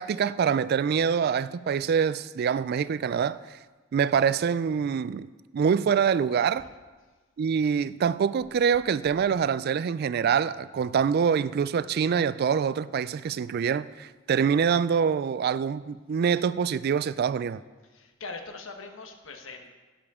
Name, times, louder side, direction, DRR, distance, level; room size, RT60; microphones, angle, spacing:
voice 1, 0.0-3.6 3.9-6.7 7.4-17.6, right 7 dB, 50° right, 0.3 m, -25 dB
voice 2, 17.9-19.7, left 3 dB, 80° left, 1.1 m, -41 dB
11.5 x 8.9 x 3.6 m
head